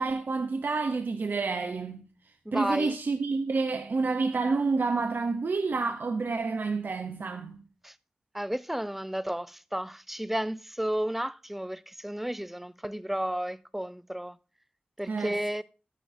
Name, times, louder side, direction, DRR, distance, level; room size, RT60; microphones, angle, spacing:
voice 1, 0.0-2.1 2.5-7.6 15.1-15.4, right 4 dB, 65° right, 0.8 m, -29 dB
voice 2, 2.5-3.0 7.8-7.9 8.3-14.4 15.0-15.6, right 1 dB, 5° right, 0.5 m, -32 dB
13.0 x 9.5 x 2.7 m
wide cardioid pair, 80°, 4 cm